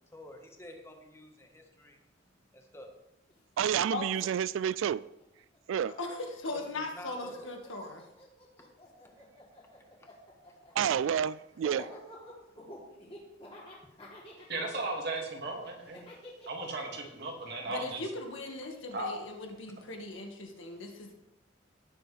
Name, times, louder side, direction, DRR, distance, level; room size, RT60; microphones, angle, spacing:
voice 1, 0.1-2.0 2.5-2.9 6.5-6.6 6.9-7.5 8.6-8.7 9.0-9.1 10.0-10.1, left 1 dB, 15° left, 1.5 m, -49 dB
Laughter, 3.3-3.4 3.6-5.9 6.2-19.2, left 1 dB, 30° left, 3.4 m, -51 dB
voice 2, 3.6-5.0 5.7-5.9 10.8-11.9, right 9 dB, 75° right, 0.3 m, -29 dB
voice 3, 6.0-8.0 17.6-21.1, left 2 dB, 75° left, 1.9 m, -39 dB
voice 4, 14.5-16.0 16.5-18.0 18.9-19.1, right 2 dB, 55° right, 2.3 m, -36 dB
17.5 x 7.7 x 3.4 m
head